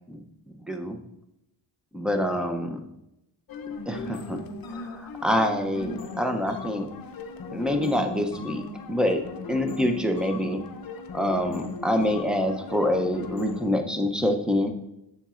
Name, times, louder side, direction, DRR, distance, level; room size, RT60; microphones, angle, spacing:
voice 1, 0.7-1.0 1.9-2.8 3.9-4.4 4.7-6.9 7.5-8.6 8.9-9.2 9.5-10.6 11.1-14.7, left 1 dB, ahead, 5 dB, 0.5 m, -26 dB
sound 1, 3.5-13.7, left 3 dB, 55° left, 0.6 m, -37 dB
7.1 x 7.0 x 2.4 m, 0.87 s
wide cardioid pair, 150°, 43 cm